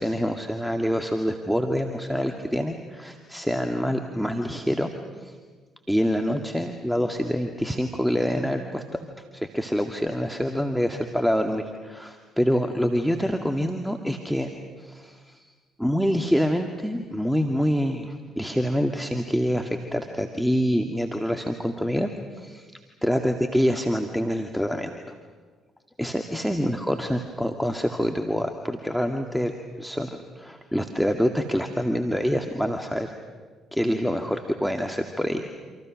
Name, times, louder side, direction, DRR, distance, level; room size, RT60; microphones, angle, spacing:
voice 1, 0.0-4.9 5.2-5.3 5.9-9.1 9.3-14.5 14.8-15.5 15.8-22.7 23.0-24.9 26.0-29.5 29.8-30.1 30.4-33.1 33.7-35.5, equal, ahead, 4 dB, 2.2 m, -26 dB
28.5 x 27.0 x 6.5 m, 1.4 s
hypercardioid pair, 45°, 0 cm